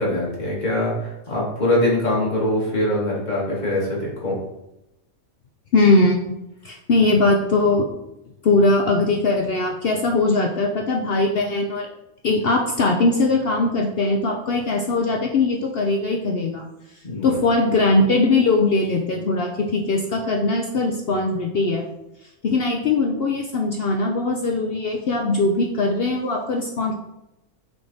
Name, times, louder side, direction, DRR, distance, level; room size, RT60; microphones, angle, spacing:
voice 1, 0.0-4.4 17.0-17.4, left 1 dB, 30° left, -5 dB, 1.9 m, -23 dB
voice 2, 5.7-6.4 6.6-7.9 8.4-11.9 12.2-16.7 17.2-21.9 22.4-27.0, left 2 dB, 65° left, 2 dB, 0.6 m, -20 dB
6.6 x 3.7 x 4.0 m, 0.89 s
omnidirectional pair, 1.5 m